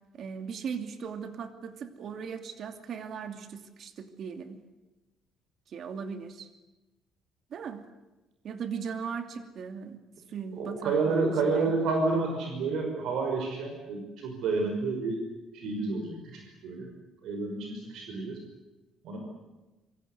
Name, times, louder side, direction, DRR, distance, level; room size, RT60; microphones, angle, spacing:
voice 1, 0.1-4.6 5.7-6.5 7.5-7.8 8.4-10.0 10.3-11.8, right 6 dB, 45° right, 7 dB, 2.6 m, -38 dB
voice 2, 10.6-15.2 15.5-16.9 17.2-18.4 19.0-19.2, right 3 dB, 65° right, 2 dB, 5.6 m, -29 dB
26.5 x 24.0 x 8.2 m, 1.1 s
cardioid pair, 170°, 0 cm